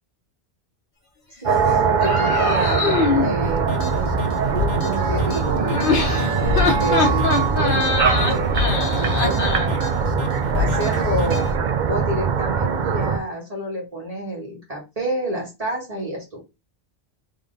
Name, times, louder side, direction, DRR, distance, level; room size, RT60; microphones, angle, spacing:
voice 1, 1.4-2.8 3.2-3.7 4.8-8.6 8.8-9.8 10.6-11.5 11.8-16.4, right 1 dB, 35° right, -2 dB, 1.7 m, -29 dB
sound 1, 1.5-13.2, right 6 dB, 55° right, 0.7 m, -22 dB
sound 2, 2.0-3.3 5.6-9.7, left 3 dB, 60° left, 1.3 m, -23 dB
sound 3, 3.4-11.6, left 4 dB, 85° left, 1.0 m, -28 dB
3.7 x 3.5 x 3.9 m, 0.25 s
omnidirectional pair, 1.0 m